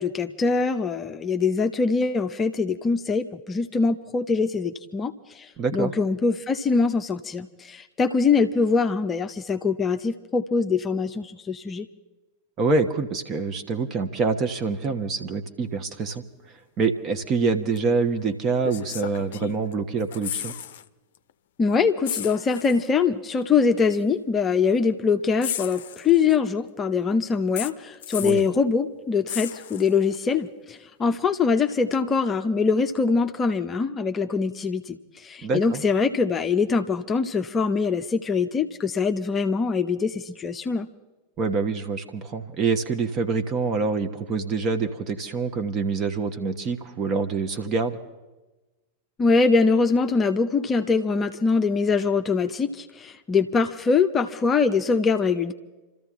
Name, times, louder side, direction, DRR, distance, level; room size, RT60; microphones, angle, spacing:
voice 1, 0.0-11.9 21.6-40.9 49.2-55.5, left 5 dB, 20° left, 5 dB, 0.7 m, -23 dB
voice 2, 5.6-5.9 12.6-16.2 16.8-20.5 28.2-28.4 35.4-35.8 41.4-48.0, right 4 dB, 30° right, 7 dB, 1.3 m, -26 dB
sound 1, 17.8-17.9 18.6-19.7 20.0-20.9 21.2-21.3 22.0-22.9 23.9-24.0 25.4-26.5 27.6-28.5 29.3-30.2 31.9-32.0, left 11 dB, 55° left, 0.6 m, -34 dB
27.5 x 14.0 x 3.7 m, 1.1 s
figure-of-eight pair, 90°, 0 cm